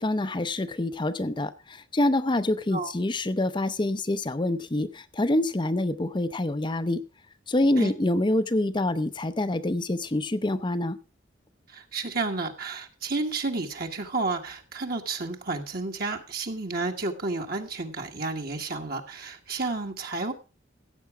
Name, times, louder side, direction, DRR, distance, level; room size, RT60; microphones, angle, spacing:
voice 1, 0.0-7.0 7.5-11.0, left 1 dB, 25° left, 12 dB, 0.6 m, -26 dB
voice 2, 11.7-20.3, right 3 dB, 50° right, 3 dB, 1.5 m, -31 dB
15.0 x 8.4 x 4.8 m, 0.32 s
head